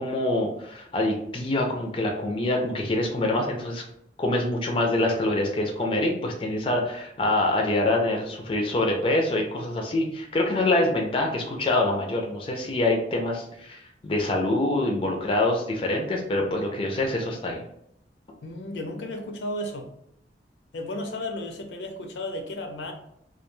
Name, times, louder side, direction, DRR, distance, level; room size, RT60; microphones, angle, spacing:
voice 1, 0.0-3.8 4.2-17.6, left 2 dB, 30° left, 1 dB, 0.4 m, -25 dB
voice 2, 18.4-19.9 20.7-22.9, left 1 dB, 85° left, 4 dB, 0.5 m, -33 dB
2.2 x 2.2 x 3.0 m, 0.75 s
head